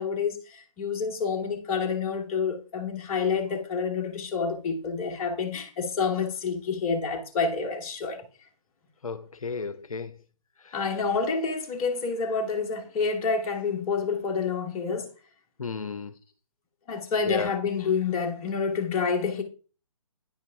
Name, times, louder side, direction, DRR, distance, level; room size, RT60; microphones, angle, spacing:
voice 1, 0.0-8.2 10.7-15.1 16.9-19.4, left 5 dB, 25° left, 1.2 m, -28 dB
voice 2, 9.0-10.2 10.6-10.8 15.6-16.1 17.3-17.5, left 4 dB, 75° left, 0.6 m, -33 dB
9.6 x 4.5 x 3.5 m
figure-of-eight pair, 135°, 18 cm